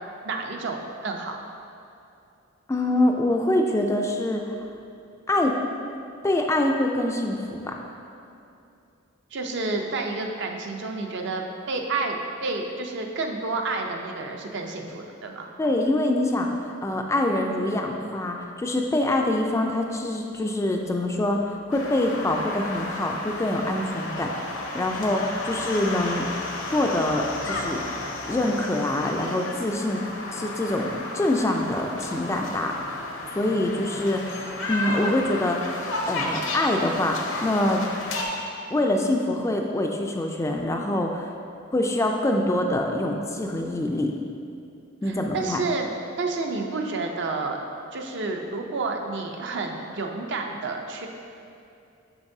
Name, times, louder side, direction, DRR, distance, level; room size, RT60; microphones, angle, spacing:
voice 1, 0.2-1.3 9.3-15.5 45.0-45.9 46.2-47.6 47.9-51.1, right 3 dB, 60° right, 2 dB, 0.5 m, -30 dB
voice 2, 2.7-4.5 5.3-5.6 6.2-7.7 15.6-16.5 16.8-24.3 24.7-26.3 26.7-27.8 28.3-30.0 30.3-33.0 33.3-35.7 36.1-37.8 38.7-41.3 41.7-44.1 45.0-45.6, left 1 dB, 15° left, 2 dB, 0.3 m, -25 dB
sound 1, 21.7-38.2, left 2 dB, 70° left, 0.7 m, -33 dB
7.0 x 5.9 x 2.7 m, 2.7 s
head